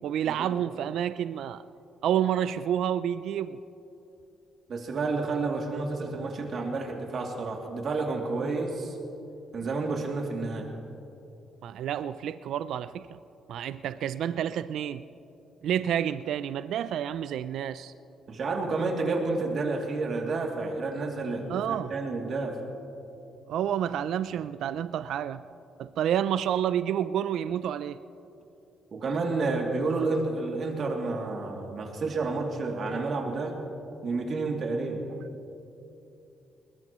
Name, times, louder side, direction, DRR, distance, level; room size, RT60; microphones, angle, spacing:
voice 1, 0.0-1.6 2.0-3.6 11.6-13.2 13.5-15.0 15.6-17.9 21.5-21.9 23.5-25.4 25.8-28.0, right 10 dB, 75° right, 13 dB, 0.4 m, -29 dB
voice 2, 4.7-9.0 9.5-10.7 18.3-22.6 28.9-33.6 34.0-35.0, right 3 dB, 55° right, 0 dB, 2.6 m, -30 dB
21.0 x 20.0 x 3.1 m, 2.9 s
cardioid pair, 90°, 0 cm